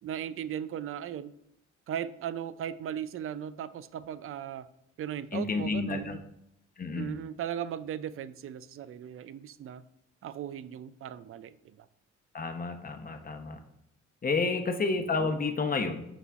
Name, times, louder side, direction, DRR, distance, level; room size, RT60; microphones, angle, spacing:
voice 1, 0.0-1.3 1.9-4.7 5.0-6.2 6.9-9.8 10.2-11.9, right 9 dB, 45° right, 15 dB, 0.4 m, -37 dB
voice 2, 5.3-6.2 6.8-7.1 12.3-13.6 14.2-16.1, left 4 dB, 30° left, 6 dB, 0.9 m, -30 dB
11.5 x 4.0 x 2.4 m, 0.80 s
cardioid pair, 90°, 30 cm